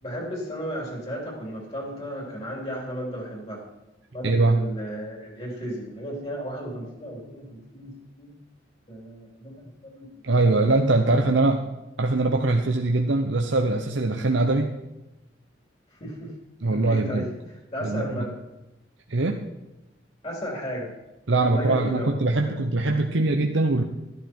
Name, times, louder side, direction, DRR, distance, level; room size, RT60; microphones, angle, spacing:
voice 1, 0.0-3.6 4.1-8.3 8.9-10.3 11.1-11.4 15.9-16.3 16.7-18.4 20.2-20.9 21.4-22.6, equal, 35° left, -1 dB, 3.4 m, -34 dB
voice 2, 4.2-4.6 10.2-11.7 12.0-14.7 16.6-17.3 17.8-18.0 19.1-19.4 21.3-23.8, right 2 dB, 85° right, 3 dB, 0.9 m, -22 dB
13.0 x 12.5 x 4.5 m, 0.99 s
head